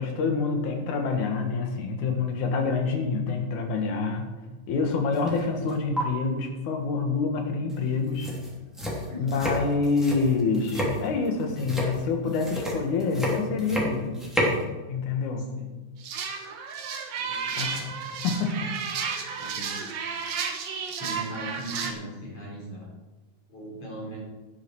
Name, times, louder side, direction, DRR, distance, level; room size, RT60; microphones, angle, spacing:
voice 1, 0.0-4.3 4.7-8.3 9.2-14.2 14.9-15.5 17.6-17.9 18.2-18.7, left 4 dB, 80° left, 4 dB, 3.0 m, -27 dB
sound 1, 5.1-5.4 5.7-6.0 7.7-7.8 8.1-14.6, equal, ahead, 2.7 m, -30 dB
voice 2, 9.1-9.4 15.5-15.7 17.1-17.8 19.4-20.5 20.9-22.9 23.5-24.2, right 1 dB, 55° left, -3 dB, 5.5 m, -40 dB
sound 2, 16.0-21.9, right 6 dB, 70° right, 2.4 m, -32 dB
11.5 x 10.5 x 4.7 m, 1.2 s
omnidirectional pair, 3.4 m